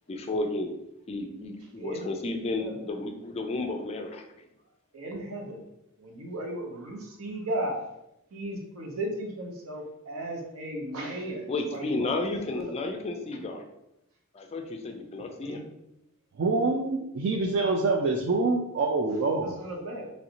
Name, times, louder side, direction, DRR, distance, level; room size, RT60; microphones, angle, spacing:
voice 1, 0.1-0.7 1.1-4.3 11.5-13.6 14.3-15.6, left 2 dB, 30° left, 4 dB, 0.3 m, -32 dB
voice 2, 1.8-2.1 2.6-2.7 4.9-5.7 6.0-7.9 8.3-12.1 12.5-12.7 15.4-15.6 19.4-20.1, right 1 dB, 75° right, 0 dB, 0.8 m, -35 dB
voice 3, 16.4-19.6, right 3 dB, 55° right, 0 dB, 0.3 m, -26 dB
3.1 x 2.6 x 2.9 m, 0.84 s
head